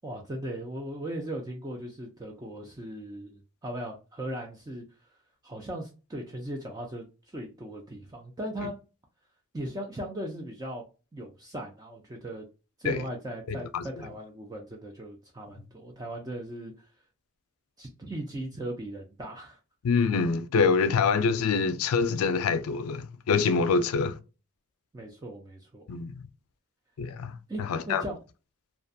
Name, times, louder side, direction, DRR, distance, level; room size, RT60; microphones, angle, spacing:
voice 1, 0.0-4.8 5.4-8.8 9.5-10.8 11.1-12.4 12.8-16.9 17.8-19.6 24.9-25.8 27.5-28.2, right 1 dB, 15° right, 0.3 m, -38 dB
voice 2, 13.5-13.8 19.8-24.2 25.9-26.3 27.0-28.0, left 5 dB, 80° left, 0.4 m, -26 dB
2.4 x 2.2 x 2.6 m
head